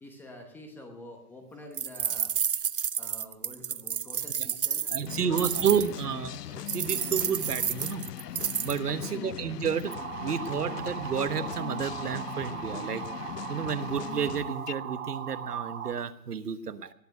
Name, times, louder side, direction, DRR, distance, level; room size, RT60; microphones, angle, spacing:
voice 1, 0.0-2.4 3.0-5.7 8.9-9.4, left 1 dB, 5° left, 5 dB, 0.8 m, -47 dB
sound 1, 1.8-5.9 6.7-8.8, right 8 dB, 35° right, 0.5 m, -30 dB
voice 2, 4.9-8.1 8.6-9.9 10.2-13.0 13.5-16.9, right 7 dB, 75° right, 12 dB, 1.4 m, -31 dB
sound 2, 5.0-14.7, left 11 dB, 80° left, 0.6 m, -40 dB
sound 3, 9.9-15.9, right 8 dB, 55° right, 2.3 m, -38 dB
19.0 x 7.4 x 9.2 m, 0.78 s
hypercardioid pair, 145°, 48 cm